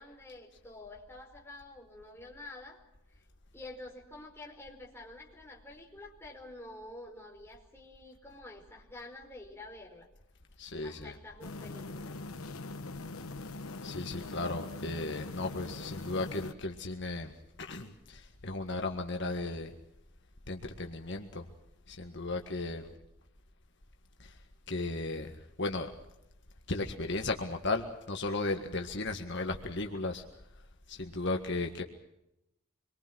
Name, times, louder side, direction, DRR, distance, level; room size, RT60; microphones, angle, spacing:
voice 1, 0.0-2.8 3.1-3.2 3.5-10.1 10.8-12.2 22.7-23.0, left 2 dB, 10° left, -1 dB, 5.0 m, -49 dB
voice 2, 10.6-11.2 13.8-17.3 17.6-19.7 20.5-21.5 21.9-22.9 24.2-24.3 24.7-25.3 25.6-25.9 26.7-30.2 30.9-31.8, left 2 dB, 55° left, 4 dB, 1.7 m, -35 dB
sound 1, 11.4-16.5, left 3 dB, 85° left, 1.1 m, -42 dB
26.5 x 23.0 x 6.2 m, 0.85 s
head